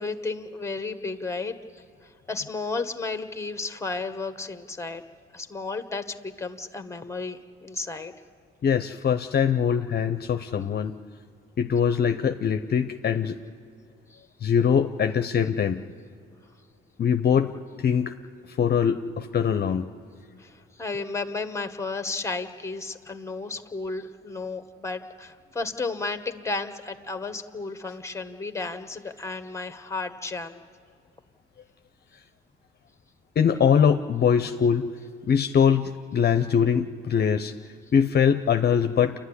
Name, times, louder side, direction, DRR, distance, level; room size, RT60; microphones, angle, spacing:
voice 1, 0.0-5.0 5.3-8.1 14.1-14.2 20.4-30.6, left 3 dB, 15° left, 9 dB, 1.4 m, -33 dB
voice 2, 8.6-11.0 11.6-13.4 14.4-15.8 17.0-17.5 17.8-18.1 18.5-19.9 33.4-34.9 35.3-37.5 37.9-39.1, left 7 dB, 50° left, 8 dB, 0.7 m, -22 dB
28.0 x 12.0 x 9.8 m, 2.3 s
cardioid pair, 80°, 21 cm